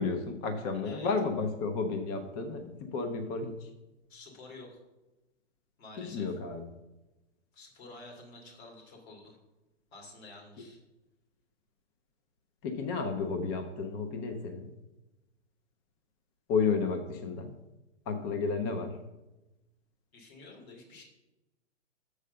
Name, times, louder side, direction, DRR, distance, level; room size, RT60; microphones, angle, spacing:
voice 1, 0.0-3.7 6.0-6.7 12.6-14.7 16.5-17.5 18.1-19.0, left 4 dB, 20° left, 6 dB, 0.5 m, -32 dB
voice 2, 4.1-4.8 5.8-6.4 7.5-9.4 9.9-10.8 20.1-21.0, left 2 dB, 55° left, 1 dB, 2.8 m, -49 dB
6.7 x 4.8 x 6.6 m, 1.0 s
hypercardioid pair, 140°, 37 cm